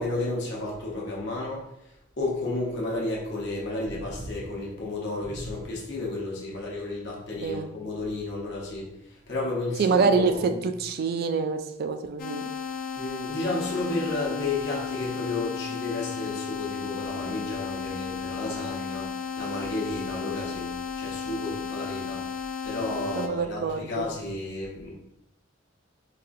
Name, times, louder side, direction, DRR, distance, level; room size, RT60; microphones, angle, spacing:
voice 1, 0.0-10.6 13.0-24.9, left 2 dB, 65° left, -4 dB, 0.8 m, -32 dB
voice 2, 9.8-10.3 10.8-12.4 23.2-24.0, right 5 dB, 55° right, 9 dB, 0.3 m, -25 dB
sound 1, 12.2-23.3, left 6 dB, 45° left, 0.4 m, -34 dB
4.1 x 2.5 x 2.5 m, 0.81 s
head